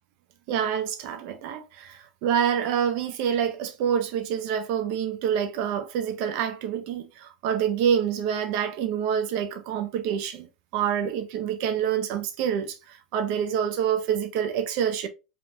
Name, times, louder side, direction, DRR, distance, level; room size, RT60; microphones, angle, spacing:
voice 1, 0.5-10.5 10.7-15.1, right 8 dB, 45° right, 0.5 m, -27 dB
5.1 x 2.9 x 2.4 m
figure-of-eight pair, 85°, 4 cm